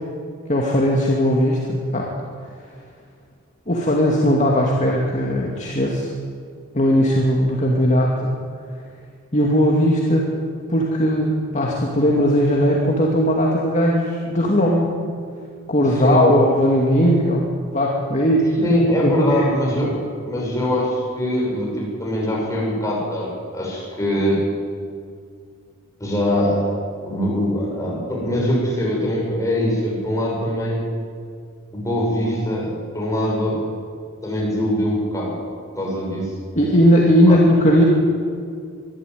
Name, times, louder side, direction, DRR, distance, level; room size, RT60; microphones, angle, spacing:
voice 1, 0.5-1.6 1.9-2.1 3.7-6.1 6.7-8.3 9.3-10.3 10.7-14.9 15.7-18.7 19.0-19.5 36.6-37.8, equal, 35° left, -2 dB, 2.3 m, -18 dB
voice 2, 18.6-24.5 26.0-26.7 27.0-30.8 31.7-33.7 34.2-35.3 35.8-36.3 37.3-37.4, equal, 15° left, -3 dB, 6.5 m, -22 dB
23.5 x 13.0 x 9.3 m, 2.2 s
head